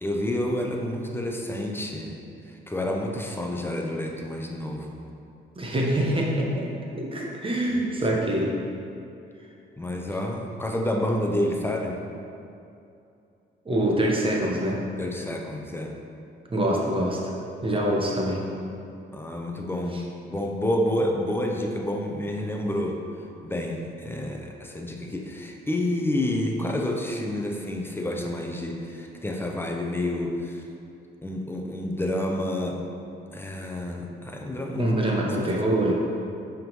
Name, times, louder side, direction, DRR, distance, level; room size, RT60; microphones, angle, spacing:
voice 1, 0.0-2.2 2.5-5.0 7.7-7.8 9.8-12.0 15.0-16.0 17.7-17.8 19.1-23.0 23.4-30.6 31.2-32.8 33.3-34.9 35.3-35.5, left 1 dB, 10° left, 1 dB, 0.7 m, -29 dB
voice 2, 5.6-6.7 6.9-8.5 13.6-14.8 16.5-17.2 17.6-18.4 19.9-20.0 34.7-35.9, right 1 dB, 25° right, -2 dB, 1.2 m, -25 dB
5.6 x 3.8 x 5.3 m, 2.6 s
cardioid pair, 90°, 20 cm